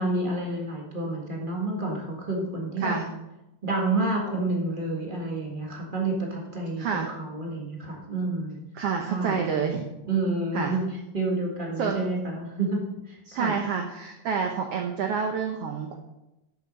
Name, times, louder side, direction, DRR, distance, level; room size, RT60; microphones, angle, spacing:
voice 1, 0.0-3.0 3.6-8.6 9.1-9.5 10.1-10.8 11.1-12.8 13.1-13.5, right 2 dB, 45° right, -1 dB, 0.6 m, -29 dB
voice 2, 2.8-3.1 6.8-7.1 8.7-9.8 10.5-10.8 11.8-12.1 13.3-16.0, right 6 dB, 90° right, 4 dB, 1.3 m, -28 dB
12.5 x 7.0 x 5.3 m, 0.95 s
omnidirectional pair, 3.9 m